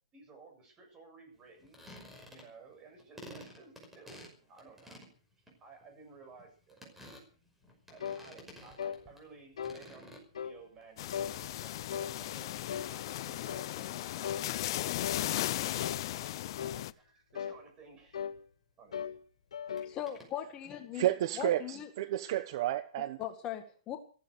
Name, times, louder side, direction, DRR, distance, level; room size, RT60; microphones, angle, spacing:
voice 1, 0.1-1.8 2.3-5.0 5.6-7.0 7.9-14.8 15.3-18.2 18.8-19.1, right 4 dB, 20° right, 7.6 m, -56 dB
sound 1, 1.6-2.7 3.0-9.3 9.6-10.7 11.0-11.5 12.4-12.5 13.7-13.8 14.0-14.1 14.5-14.6 19.8-20.3, equal, 5° right, 5.6 m, -52 dB
sound 2, 8.0-8.3 8.8-9.0 9.6-9.8 10.3-10.6 11.1-11.4 11.9-12.1 12.7-12.9 13.5-13.7 14.2-14.5 15.0-15.3 15.8-16.0 16.6-16.8 17.3-17.6 18.1-18.4 18.9-19.2 19.5-19.9, left 8 dB, 85° left, 1.9 m, -38 dB
sound 3, 11.0-16.9, left 14 dB, 50° left, 0.8 m, -36 dB
voice 2, 19.8-21.1 21.4-21.9 23.2-24.0, left 11 dB, 25° left, 1.8 m, -39 dB
voice 3, 20.9-23.2, right 13 dB, 50° right, 0.9 m, -31 dB
15.0 x 14.5 x 6.6 m
hypercardioid pair, 145°, 3 cm